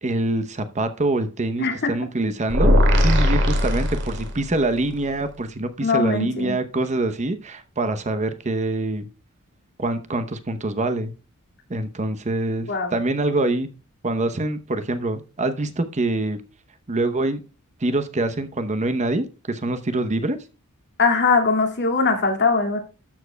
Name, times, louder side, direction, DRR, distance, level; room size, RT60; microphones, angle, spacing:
voice 1, 0.0-2.7 3.0-9.1 9.8-11.1 11.7-13.7 14.0-16.4 16.9-17.4 17.8-20.4, right 2 dB, 30° right, 9 dB, 0.8 m, -25 dB
voice 2, 1.6-1.9 5.8-6.6 12.7-12.9 21.0-22.8, left 4 dB, 50° left, 3 dB, 2.3 m, -21 dB
sound 1, 2.5-4.6, equal, 55° right, 2.2 m, -18 dB
13.0 x 7.3 x 2.2 m, 0.33 s
head